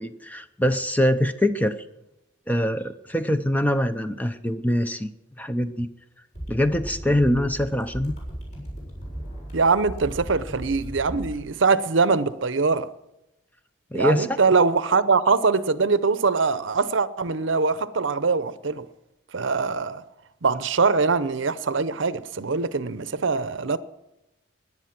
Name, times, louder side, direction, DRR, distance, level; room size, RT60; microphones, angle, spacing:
voice 1, 0.0-1.8 2.5-5.1 5.4-5.9 6.5-8.2 13.9-14.4, left 1 dB, 10° left, 0.6 m, -23 dB
sound 1, 6.3-11.4, right 1 dB, 35° left, 7.1 m, -36 dB
voice 2, 9.5-12.9 13.9-18.8 19.3-20.0 20.4-23.8, right 4 dB, 75° right, 0.7 m, -22 dB
17.0 x 10.5 x 6.0 m
head